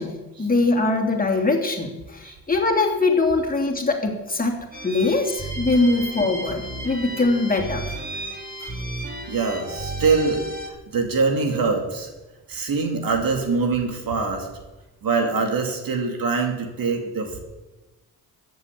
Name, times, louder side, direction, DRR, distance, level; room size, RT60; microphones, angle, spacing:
voice 1, 0.0-8.0 8.6-8.7, left 3 dB, 25° left, 1 dB, 2.9 m, -22 dB
sound 1, 4.7-10.7, right 1 dB, 25° right, 3.5 m, -33 dB
voice 2, 9.3-10.4 10.9-12.1 12.5-14.5 15.0-17.4, right 4 dB, 65° right, 4 dB, 2.7 m, -23 dB
13.5 x 7.9 x 8.5 m, 1.1 s
cardioid pair, 70°, 37 cm